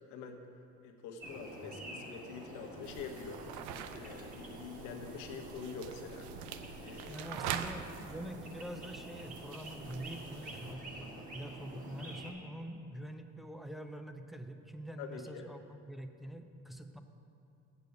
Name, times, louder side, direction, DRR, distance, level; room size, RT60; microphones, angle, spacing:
voice 1, 0.1-0.4 0.8-3.4 3.9-6.3 6.8-7.3 15.0-15.5, left 5 dB, 70° left, 4 dB, 1.1 m, -46 dB
sound 1, 1.2-12.3, right 1 dB, 25° right, 1.5 m, -48 dB
sound 2, 2.8-10.7, right 9 dB, 85° right, 0.6 m, -45 dB
voice 2, 7.1-17.0, right 1 dB, ahead, 6 dB, 0.3 m, -45 dB
8.2 x 6.8 x 7.8 m, 2.8 s
cardioid pair, 145°, 29 cm